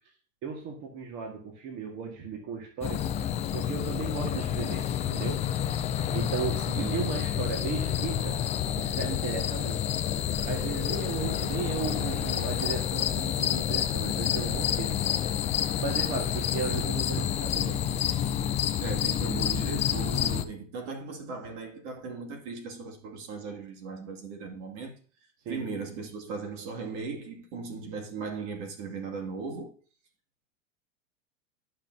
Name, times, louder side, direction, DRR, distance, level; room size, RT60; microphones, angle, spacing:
voice 1, 0.4-5.4 6.1-8.4 8.8-9.8 10.4-15.4 15.8-17.8 25.4-25.6, right 5 dB, 45° right, 1.8 m, -36 dB
sound 1, 2.8-20.4, left 10 dB, 20° left, 0.3 m, -29 dB
voice 2, 6.7-7.1 18.8-24.9 25.5-29.7, right 4 dB, 65° right, 2.4 m, -37 dB
12.0 x 5.7 x 2.8 m
supercardioid pair, 125°, 38 cm